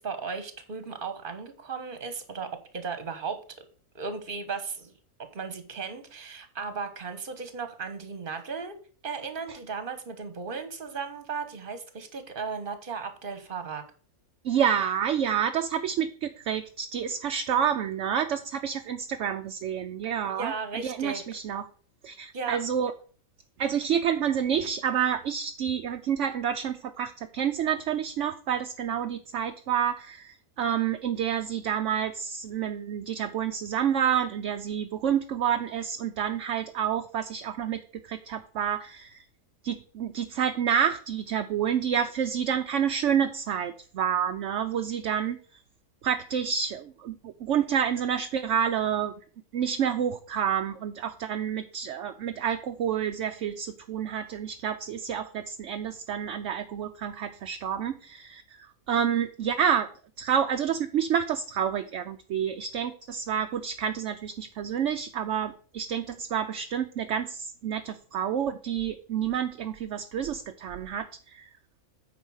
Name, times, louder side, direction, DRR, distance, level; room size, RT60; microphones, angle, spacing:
voice 1, 0.0-3.4 3.9-4.9 5.3-8.7 9.0-13.8 20.3-21.2 22.3-22.6, right 5 dB, 40° right, 8 dB, 1.3 m, -36 dB
voice 2, 14.4-21.6 22.0-22.9 23.6-39.2 39.6-45.6 46.0-49.1 49.5-59.9 60.2-71.5, right 8 dB, 65° right, 6 dB, 0.9 m, -29 dB
9.1 x 4.8 x 6.3 m, 0.42 s
omnidirectional pair, 1.5 m